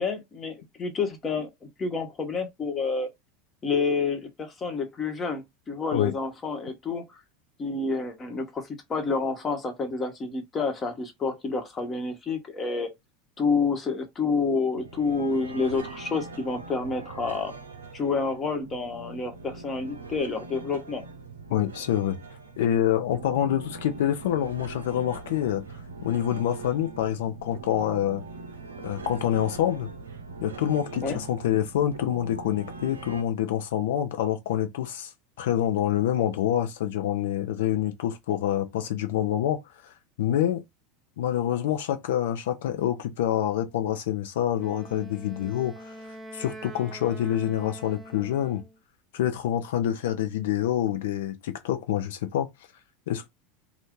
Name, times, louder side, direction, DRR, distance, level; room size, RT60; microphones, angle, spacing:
voice 1, 0.0-3.1 3.6-7.2 7.6-12.9 13.4-17.5 17.9-21.0 31.0-31.2, left 4 dB, 30° left, 1.1 m, -29 dB
sound 1, 14.7-33.2, right 3 dB, 85° right, 0.5 m, -42 dB
voice 2, 21.5-22.2 22.6-25.6 26.0-28.2 28.8-29.9 30.4-35.1 35.4-39.6 40.2-40.6 41.2-45.9 46.3-48.6 49.1-52.5 53.1-53.3, left 11 dB, 70° left, 0.7 m, -26 dB
Wind instrument woodwind instrument, 44.6-48.8, right 1 dB, 15° right, 1.0 m, -44 dB
2.6 x 2.5 x 3.6 m
hypercardioid pair, 80°, 0 cm